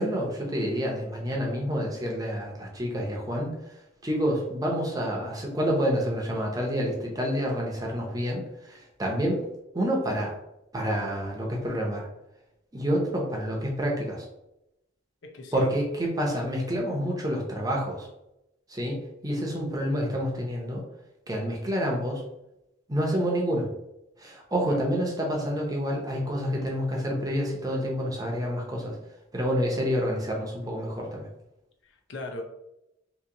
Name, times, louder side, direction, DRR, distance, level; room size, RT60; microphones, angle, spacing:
voice 1, 0.0-3.5 4.0-9.4 9.7-10.3 10.7-12.1 12.7-14.2 15.5-18.1 18.7-19.0 19.2-20.8 21.3-22.2 22.9-23.7 24.2-28.9 29.3-31.3, equal, 20° right, -1 dB, 0.7 m, -28 dB
voice 2, 15.2-15.7 24.7-24.8 31.8-32.4, left 2 dB, 65° left, 3 dB, 0.6 m, -39 dB
2.9 x 2.7 x 3.8 m, 0.87 s
head